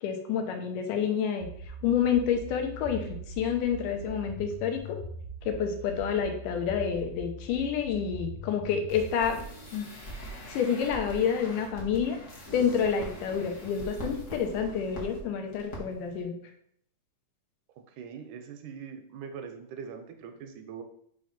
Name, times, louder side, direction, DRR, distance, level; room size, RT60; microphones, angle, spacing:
voice 1, 0.0-1.5 1.8-3.1 3.4-5.0 5.5-9.4 9.7-9.9 10.5-12.2 12.5-16.4, left 7 dB, 90° left, 4 dB, 2.4 m, -28 dB
sound 1, 1.4-9.1, right 1 dB, 65° left, 1.5 m, -41 dB
sound 2, 8.9-15.2 15.5-15.8 16.1-16.2, right 1 dB, 50° left, 0.9 m, -42 dB
voice 2, 18.0-20.8, right 6 dB, 80° right, 6 dB, 2.0 m, -42 dB
5.5 x 3.2 x 5.6 m, 0.66 s
omnidirectional pair, 3.6 m